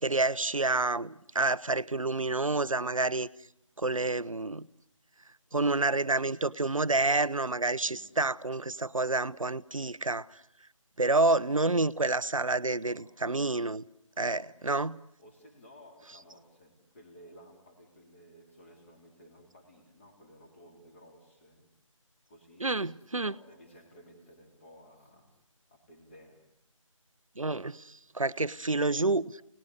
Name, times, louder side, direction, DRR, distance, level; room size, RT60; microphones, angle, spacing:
voice 1, 0.0-3.3 3.8-4.7 5.5-10.3 11.0-13.8 14.2-15.0 22.6-23.3 27.4-29.4, right 3 dB, 75° right, 0.9 m, -28 dB
voice 2, 7.8-8.2 10.6-10.7 12.7-13.3 14.2-14.9 15.2-21.7 22.3-25.4 25.7-26.5, equal, 20° left, 3.7 m, -56 dB
29.0 x 19.5 x 8.2 m
figure-of-eight pair, 160°, 17 cm